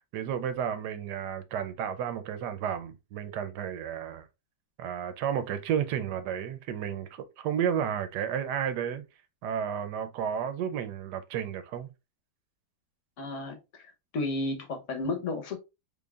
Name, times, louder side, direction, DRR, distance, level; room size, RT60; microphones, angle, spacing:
voice 1, 0.1-4.3 4.8-9.0 9.4-11.9, right 8 dB, 80° right, 1.2 m, -32 dB
voice 2, 13.2-15.6, left 2 dB, 55° left, 1.1 m, -33 dB
3.9 x 3.3 x 2.3 m
omnidirectional pair, 1.8 m